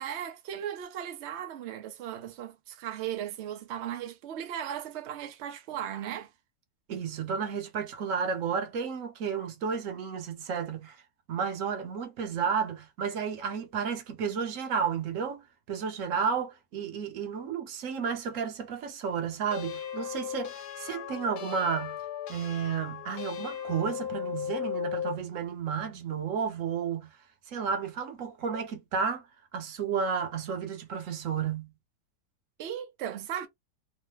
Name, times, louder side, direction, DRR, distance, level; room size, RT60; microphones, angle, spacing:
voice 1, 0.0-6.3 32.6-33.5, right 10 dB, 75° right, 0.6 m, -37 dB
voice 2, 6.9-11.0 11.3-22.0 22.3-27.1 27.5-29.3 29.5-31.7, right 6 dB, 60° right, 0.9 m, -32 dB
sound 1, 19.5-25.2, left 9 dB, 70° left, 1.3 m, -36 dB
3.1 x 2.0 x 3.2 m
omnidirectional pair, 1.8 m